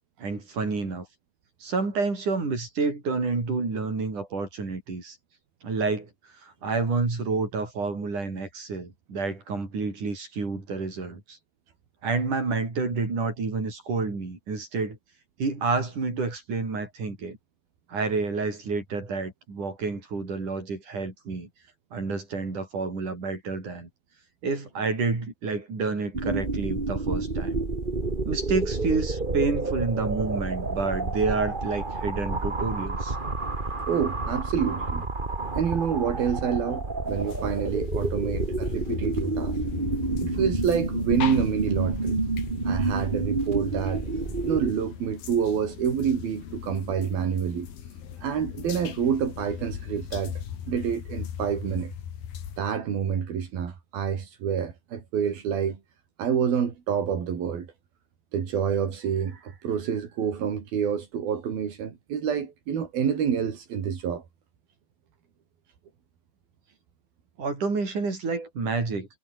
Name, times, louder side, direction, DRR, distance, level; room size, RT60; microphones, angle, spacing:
voice 1, 0.2-1.1 1.6-5.2 5.6-6.1 6.4-11.4 12.0-15.0 15.4-17.4 17.9-21.5 21.9-23.9 24.4-27.6 28.2-33.2 67.4-69.1, right 4 dB, 55° right, 8.7 m, -29 dB
sound 1, 26.1-44.7, right 3 dB, 20° right, 1.5 m, -29 dB
voice 2, 33.9-35.0 35.6-39.6 40.2-42.2 42.6-44.0 44.4-47.7 48.2-50.3 50.7-51.9 52.6-55.8 56.2-57.7 58.3-64.2, right 7 dB, 80° right, 5.2 m, -27 dB
sound 2, 37.1-52.6, left 9 dB, 80° left, 4.3 m, -38 dB
omnidirectional pair, 4.2 m